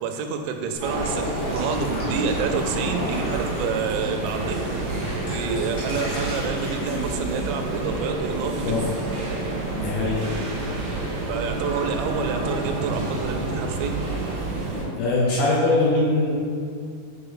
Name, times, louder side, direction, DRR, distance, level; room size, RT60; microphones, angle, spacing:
voice 1, 0.0-4.6 5.3-8.6 11.3-14.0, right 5 dB, 90° right, 5 dB, 2.9 m, -28 dB
Drip, 0.7-4.3 4.7-7.8, left 1 dB, 60° left, 2.0 m, -37 dB
sound 1, 0.8-14.8, right 2 dB, 70° right, 1.6 m, -28 dB
voice 2, 9.7-10.2 15.0-16.3, left 2 dB, 75° left, -6 dB, 2.3 m, -21 dB
8.6 x 3.6 x 3.7 m, 2.2 s
omnidirectional pair, 5.1 m